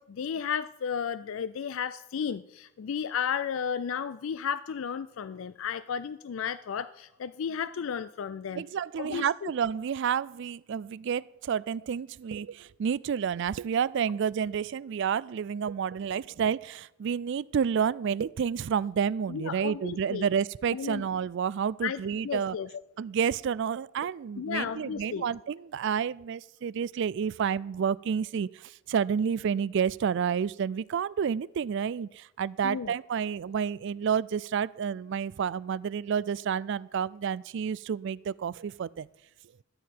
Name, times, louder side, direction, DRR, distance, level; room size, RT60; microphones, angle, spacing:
voice 1, 0.0-8.6 9.0-9.5 19.3-20.2 20.7-21.0 21.8-22.7 24.4-25.3 32.6-32.9, left 7 dB, 75° left, 15 dB, 0.4 m, -33 dB
voice 2, 8.5-22.6 23.0-39.1, right 7 dB, 60° right, 21 dB, 0.3 m, -30 dB
13.5 x 4.8 x 9.0 m, 0.86 s
head